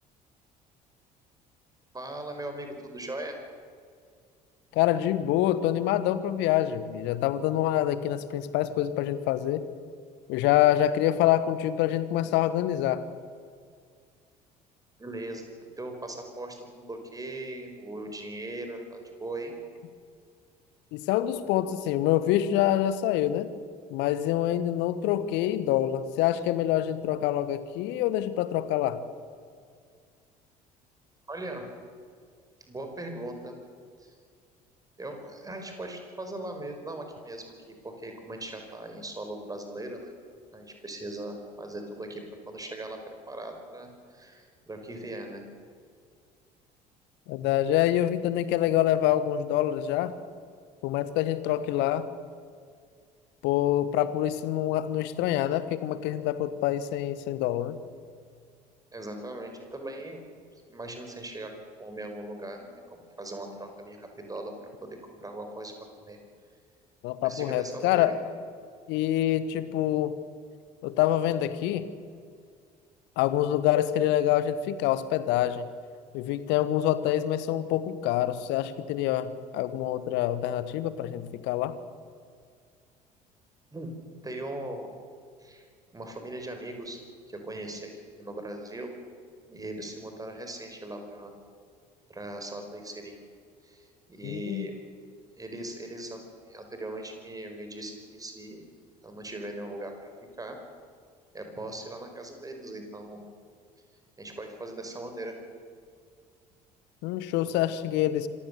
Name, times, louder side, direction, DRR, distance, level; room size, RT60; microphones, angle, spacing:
voice 1, 1.9-3.4 15.0-15.5 15.8-19.5 31.3-31.6 32.7-33.6 34.0-34.1 35.0-37.5 37.8-40.0 40.5-45.4 58.9-60.2 60.7-61.5 61.8-66.2 67.2-68.1 83.7-83.9 84.2-84.9 85.4-85.7 85.9-87.0 87.3-88.9 89.5-91.3 92.1-93.1 93.6-94.7 95.4-98.6 99.0-99.9 100.4-100.6 101.3-103.2 104.2-105.3, right 1 dB, 15° right, 5 dB, 4.8 m, -39 dB
voice 2, 4.7-9.7 10.3-13.1 20.9-23.5 23.9-29.0 47.3-50.2 50.8-52.1 53.4-57.8 67.0-68.1 68.9-70.2 70.8-71.9 73.2-75.7 76.1-81.7 94.2-94.7 107.0-108.3, left 12 dB, 60° left, 14 dB, 1.2 m, -26 dB
26.0 x 16.0 x 6.7 m, 2.1 s
figure-of-eight pair, 55°, 21 cm